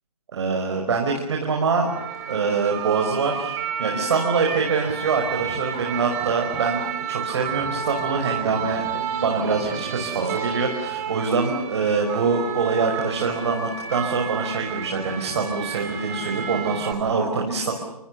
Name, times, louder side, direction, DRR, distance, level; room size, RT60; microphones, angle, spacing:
voice 1, 0.3-1.9 2.3-17.7, right 4 dB, 45° right, 1 dB, 5.3 m, -24 dB
sound 1, 1.9-16.9, right 8 dB, 25° right, 5.2 m, -31 dB
29.0 x 26.0 x 6.9 m, 0.90 s
figure-of-eight pair, 150°, 20 cm